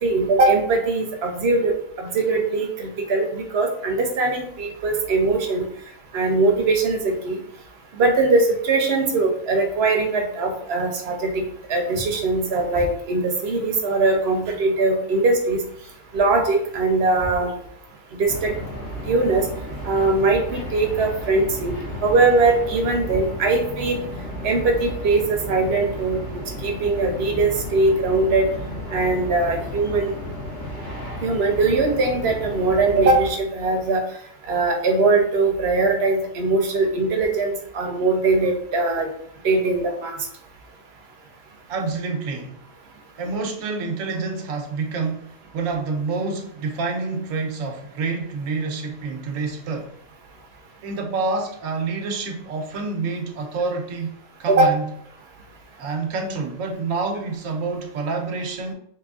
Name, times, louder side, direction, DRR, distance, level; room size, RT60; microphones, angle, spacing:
voice 1, 0.0-5.6 6.1-7.4 7.9-15.6 16.1-17.5 18.2-18.5 19.1-19.5 19.8-21.7 22.0-24.0 24.4-26.2 26.6-28.5 28.9-30.1 31.2-34.0 34.5-39.1 39.4-40.1 54.5-54.7, right 3 dB, 55° right, 2 dB, 0.9 m, -21 dB
sound 1, 18.2-33.3, equal, 40° left, 1.1 m, -33 dB
voice 2, 41.7-42.6 43.2-49.9 50.8-54.9 55.8-58.7, right 4 dB, 80° right, 2 dB, 1.1 m, -28 dB
4.1 x 3.1 x 2.3 m, 0.68 s
omnidirectional pair, 1.4 m